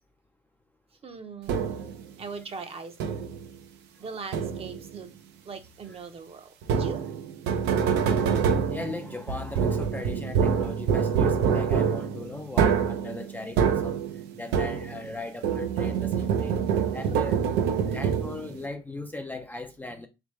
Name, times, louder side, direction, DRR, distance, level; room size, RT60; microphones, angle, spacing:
voice 1, 1.0-1.8 2.2-3.3 4.0-5.1 5.4-7.0 17.1-17.2, right 5 dB, 35° right, 0.7 m, -40 dB
sound 1, 1.5-2.0 3.0-3.5 4.3-4.9 6.6-15.1 15.4-18.6, right 7 dB, 85° right, 0.6 m, -26 dB
voice 2, 8.6-14.0 14.3-16.6 16.9-17.4 17.9-20.1, left 2 dB, 10° left, 0.4 m, -38 dB
3.4 x 3.1 x 3.1 m
cardioid pair, 110°, 17 cm